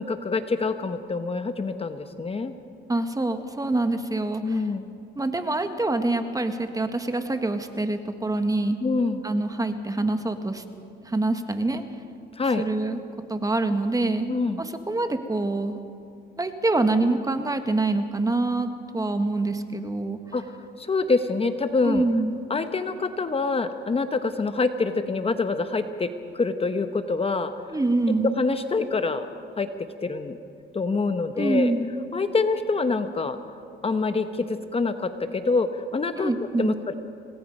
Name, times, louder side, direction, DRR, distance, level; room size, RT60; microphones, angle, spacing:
voice 1, 0.0-2.5 4.4-4.8 8.8-9.2 12.4-12.6 14.3-14.6 20.3-20.4 20.8-22.0 22.5-27.5 28.2-29.3 29.6-29.7 30.0-30.4 30.7-31.7 32.1-33.4 33.8-36.3 36.6-36.9, left 4 dB, 30° left, 9 dB, 1.0 m, -26 dB
voice 2, 2.9-4.6 5.1-8.8 9.2-10.6 11.0-11.8 12.6-13.0 13.3-14.3 14.6-15.8 16.4-20.2 21.8-22.4 27.7-28.3 31.4-31.9 36.2-36.8, right 2 dB, 15° right, 7 dB, 1.6 m, -25 dB
26.5 x 19.5 x 5.5 m, 2.5 s
cardioid pair, 90°, 20 cm